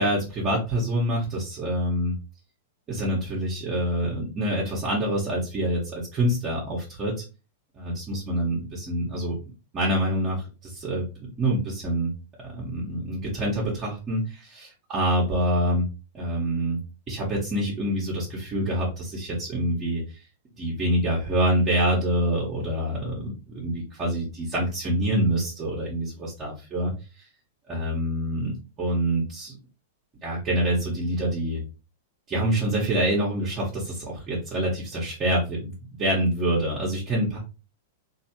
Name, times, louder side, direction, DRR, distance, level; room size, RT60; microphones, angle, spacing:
voice 1, 0.0-2.1 2.9-7.2 7.8-12.1 12.4-15.9 16.1-16.8 17.1-20.0 20.6-26.9 27.7-28.5 28.8-29.6 30.2-31.6 32.3-37.4, right 1 dB, 30° right, -6 dB, 1.3 m, -26 dB
3.2 x 2.8 x 2.9 m, 0.31 s
figure-of-eight pair, 100°, 0 cm